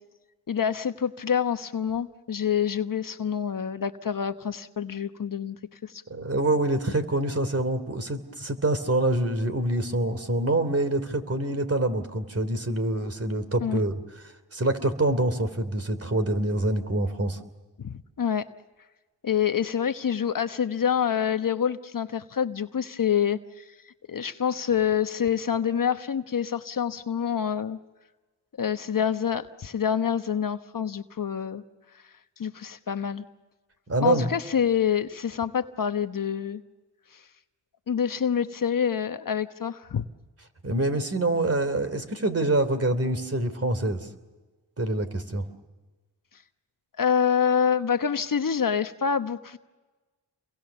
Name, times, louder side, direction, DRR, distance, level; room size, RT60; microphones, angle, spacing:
voice 1, 0.5-5.6 5.8-6.0 13.6-13.8 17.8-18.4 19.2-23.6 24.1-27.8 28.6-31.6 32.4-33.2 34.0-36.6 37.9-40.0 47.0-49.6, left 8 dB, 50° left, 9 dB, 1.1 m, -26 dB
voice 2, 6.1-14.0 14.5-17.4 33.9-34.3 40.6-44.1 44.8-45.4, right 1 dB, 35° right, 10 dB, 3.2 m, -26 dB
29.5 x 23.0 x 7.0 m, 1.2 s
cardioid pair, 55°, 42 cm